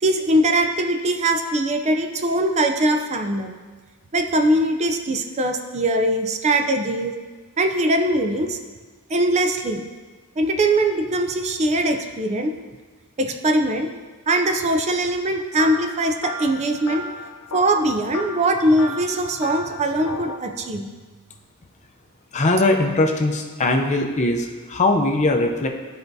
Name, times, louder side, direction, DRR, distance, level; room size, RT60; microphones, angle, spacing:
voice 1, 0.0-3.5 4.1-7.1 7.6-8.6 9.1-9.8 10.4-12.5 13.2-13.9 14.3-17.1 17.5-20.9, right 1 dB, 30° right, 5 dB, 0.4 m, -21 dB
sound 1, 15.6-20.4, left 2 dB, 85° left, 0.6 m, -34 dB
voice 2, 22.3-25.7, left 2 dB, 30° left, 3 dB, 0.6 m, -20 dB
12.5 x 4.5 x 2.7 m, 1.4 s
head